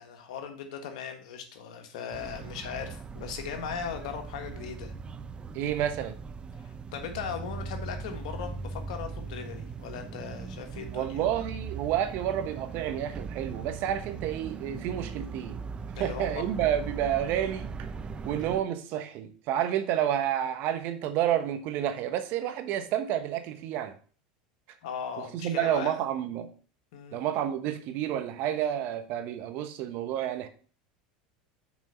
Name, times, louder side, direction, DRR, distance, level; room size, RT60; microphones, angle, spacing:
voice 1, 0.0-4.9 6.9-11.2 15.9-16.5 18.5-18.6 24.8-25.9 26.9-27.2, left 7 dB, 75° left, 1.6 m, -38 dB
sound 1, 2.1-18.6, right 5 dB, 25° right, 0.5 m, -39 dB
voice 2, 5.5-6.1 10.9-15.6 16.0-17.7 18.2-23.9 25.2-26.5 27.1-30.5, right 10 dB, 55° right, 1.1 m, -30 dB
6.1 x 4.6 x 5.6 m
supercardioid pair, 105°, 4 cm